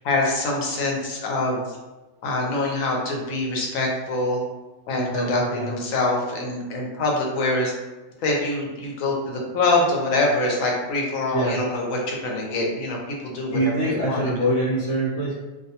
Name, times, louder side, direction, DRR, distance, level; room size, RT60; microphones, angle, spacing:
voice 1, 0.0-1.8 2.2-4.4 4.9-7.7 8.2-13.6 13.8-14.3, left 2 dB, 80° left, -1 dB, 1.0 m, -24 dB
voice 2, 4.9-5.7 11.3-11.6 13.5-15.3, right 1 dB, 60° left, -10 dB, 1.0 m, -24 dB
2.5 x 2.2 x 2.7 m, 1.2 s
omnidirectional pair, 1.4 m